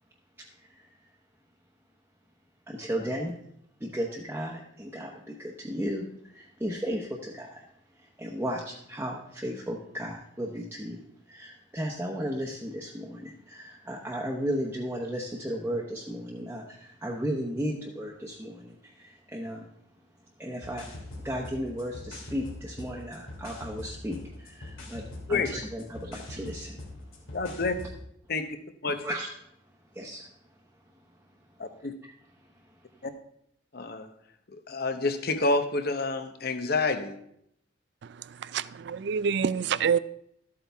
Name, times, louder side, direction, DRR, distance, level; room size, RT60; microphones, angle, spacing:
voice 1, 0.6-0.9 2.7-3.3 3.8-7.6 8.0-19.6 20.4-20.9 21.2-25.0 25.3-26.8 29.0-29.3 29.9-30.3, equal, 10° right, -3 dB, 1.0 m, -35 dB
sound 1, 20.6-28.0, left 2 dB, 90° left, 2.7 m, -43 dB
voice 2, 27.3-27.7 28.3-28.5 28.8-29.0 31.6-31.9 33.0-33.1 33.7-34.1 34.5-37.2, left 3 dB, 50° left, 9 dB, 0.9 m, -28 dB
voice 3, 38.5-40.0, right 6 dB, 60° right, 17 dB, 0.4 m, -26 dB
13.0 x 8.5 x 3.5 m, 0.73 s
head